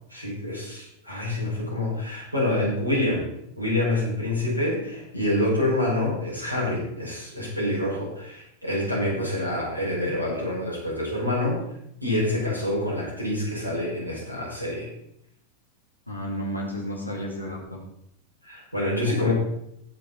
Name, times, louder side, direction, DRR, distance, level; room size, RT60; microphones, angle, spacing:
voice 1, 0.1-3.3 3.6-11.6 12.0-14.9 18.4-19.3, left 1 dB, 85° right, -5 dB, 5.7 m, -27 dB
voice 2, 16.1-17.8 19.1-19.3, equal, 85° left, -2 dB, 3.4 m, -32 dB
19.0 x 6.9 x 4.2 m, 0.77 s
figure-of-eight pair, 90°, 0 cm